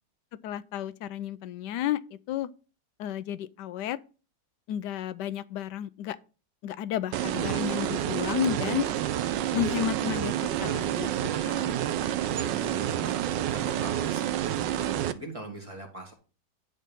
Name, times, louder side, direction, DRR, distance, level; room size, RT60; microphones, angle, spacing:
voice 1, 0.4-2.0 2.3-2.5 3.0-4.0 4.7-6.2 6.6-8.8 9.5-10.3 10.6-11.1 11.4-11.8, left 11 dB, 75° left, 1.2 m, -32 dB
sound 1, 7.1-15.1, right 11 dB, 80° right, 1.3 m, -29 dB
voice 2, 12.4-16.1, right 2 dB, 20° right, 1.8 m, -42 dB
11.0 x 4.1 x 5.3 m
omnidirectional pair, 2.0 m